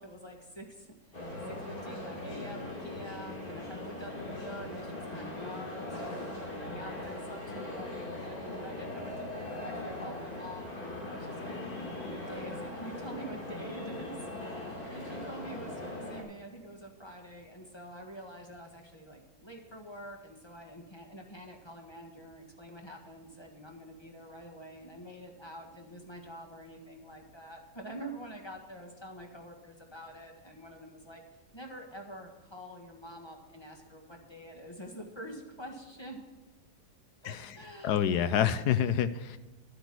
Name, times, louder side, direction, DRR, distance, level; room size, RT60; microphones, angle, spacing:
voice 1, 0.0-11.6 12.0-31.2 31.5-36.2 37.2-38.2, equal, 15° left, 1 dB, 1.5 m, -47 dB
sound 1, 1.1-16.2, left 1 dB, 50° left, 3.4 m, -40 dB
voice 2, 37.8-39.4, left 9 dB, 70° left, 13 dB, 1.1 m, -27 dB
11.5 x 8.0 x 6.1 m, 1.2 s
omnidirectional pair, 2.0 m